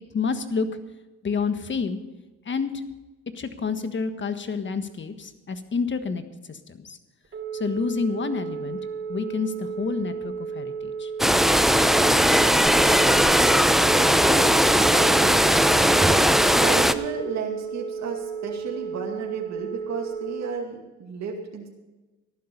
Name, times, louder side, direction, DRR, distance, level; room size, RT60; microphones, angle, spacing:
voice 1, 0.1-0.7 1.2-2.0 2.4-2.8 3.3-6.2 6.5-7.0 7.5-8.8 9.1-11.1, left 5 dB, 40° left, 9 dB, 1.5 m, -28 dB
Telephone, 7.2-20.5, right 6 dB, 45° right, 2.9 m, -33 dB
sound 1, 11.2-16.9, equal, ahead, 0.7 m, -18 dB
voice 2, 14.1-16.2 16.6-21.7, right 5 dB, 65° right, 0 dB, 2.3 m, -34 dB
14.5 x 11.5 x 5.4 m, 1.1 s
cardioid pair, 90°, 30 cm